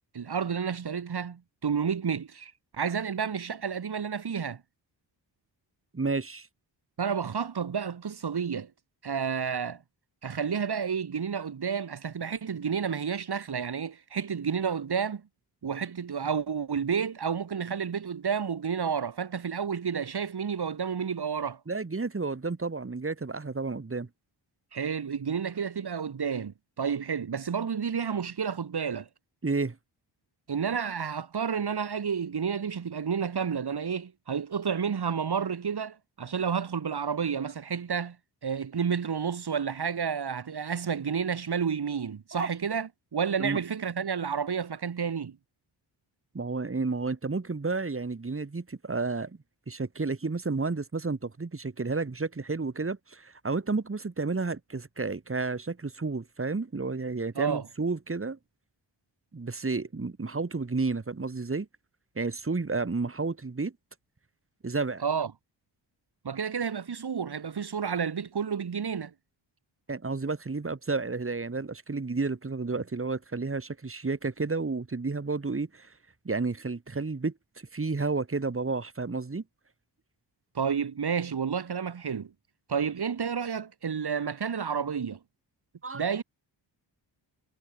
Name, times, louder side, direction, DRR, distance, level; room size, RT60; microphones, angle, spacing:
voice 1, 0.1-4.6 7.0-8.7 9.0-9.8 10.2-15.2 15.6-21.6 24.7-29.1 30.5-38.2 38.4-45.4 57.4-57.7 65.0-65.3 66.2-69.1 80.5-82.3 82.7-85.2 85.9-86.2, right 6 dB, 60° right, 4.0 m, -30 dB
voice 2, 5.9-6.5 21.7-24.1 29.4-29.8 42.4-42.5 43.4-43.6 46.3-49.4 49.7-58.4 59.3-61.7 62.2-63.7 64.6-65.0 69.9-75.9 76.2-77.3 77.7-79.4 85.8-86.0, right 3 dB, 30° right, 4.4 m, -31 dB
wide cardioid pair, 95°, 44 cm